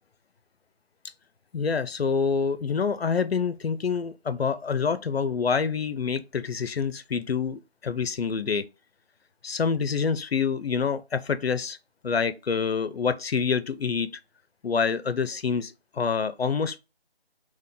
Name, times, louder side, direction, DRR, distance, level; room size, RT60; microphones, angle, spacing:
voice 1, 1.5-8.6 9.4-11.8 12.0-14.1 14.6-16.8, left 5 dB, 75° left, 0.6 m, -27 dB
6.2 x 2.2 x 3.6 m
figure-of-eight pair, 165°, 32 cm